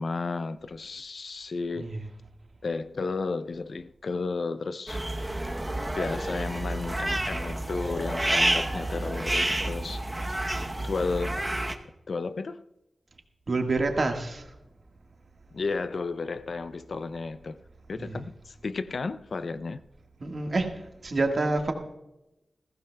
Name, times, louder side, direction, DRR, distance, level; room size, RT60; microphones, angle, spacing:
voice 1, 0.0-1.9 2.6-5.1 6.0-10.5 10.8-11.5 12.1-12.7 15.5-17.6 17.9-19.8, left 4 dB, 60° left, 0.4 m, -33 dB
voice 2, 1.8-2.1 7.8-7.9 13.5-14.4 18.0-18.2 20.2-21.7, right 3 dB, 50° right, 1.5 m, -28 dB
sound 1, 4.9-11.7, right 1 dB, 15° right, 0.8 m, -29 dB
20.5 x 15.0 x 2.2 m
wide cardioid pair, 115°, 0 cm